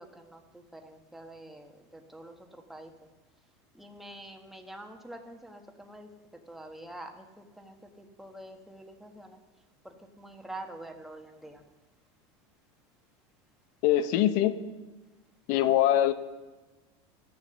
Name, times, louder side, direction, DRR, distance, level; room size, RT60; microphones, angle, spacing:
voice 1, 0.0-2.9 3.7-6.1 6.5-9.4 9.8-11.6, right 1 dB, ahead, 3 dB, 1.3 m, -46 dB
voice 2, 13.8-14.5 15.5-16.1, left 12 dB, 60° left, 11 dB, 0.9 m, -23 dB
13.5 x 7.0 x 6.9 m, 1.2 s
supercardioid pair, 130°, 15 cm